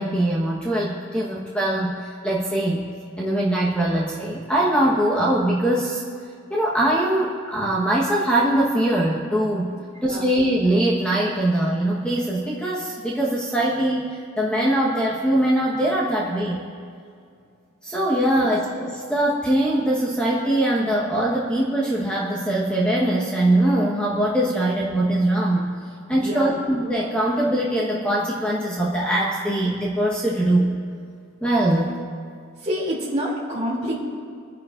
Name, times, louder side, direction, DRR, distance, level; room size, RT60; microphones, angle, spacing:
voice 1, 0.0-2.9 3.2-6.0 6.5-9.7 10.0-16.6 17.8-25.7 26.1-30.7 31.4-32.0, right 1 dB, 5° left, -6 dB, 1.1 m, -22 dB
voice 2, 26.2-26.6 32.6-34.0, equal, 30° right, -3 dB, 2.7 m, -27 dB
28.0 x 10.5 x 2.5 m, 2.3 s
head